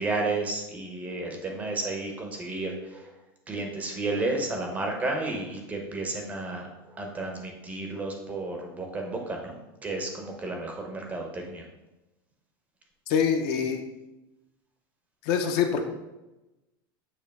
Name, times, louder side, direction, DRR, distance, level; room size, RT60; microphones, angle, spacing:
voice 1, 0.0-3.0 3.5-6.7 7.0-9.6 9.8-11.6, right 2 dB, 10° right, 2 dB, 0.6 m, -32 dB
voice 2, 13.1-13.8 15.2-15.8, left 7 dB, 40° left, 5 dB, 0.5 m, -25 dB
6.9 x 2.8 x 5.2 m, 1.0 s
supercardioid pair, 175°, 12 cm